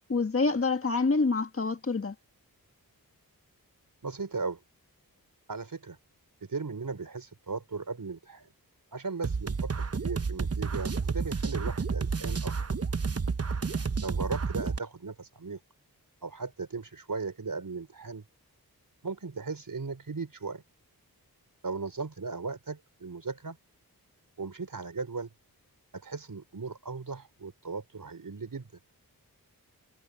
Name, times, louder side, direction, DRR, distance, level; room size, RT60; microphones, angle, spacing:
voice 1, 0.1-2.1, left 3 dB, 35° left, 1.8 m, -26 dB
voice 2, 4.0-4.6 5.5-6.0 6.5-8.5 8.9-12.5 14.0-15.6 16.2-18.2 19.0-20.6 21.6-23.6 24.4-25.3 26.0-28.7, right 4 dB, 60° right, 5.7 m, -37 dB
sound 1, 9.2-14.8, right 5 dB, 40° right, 1.0 m, -30 dB
wide cardioid pair, 95°, 37 cm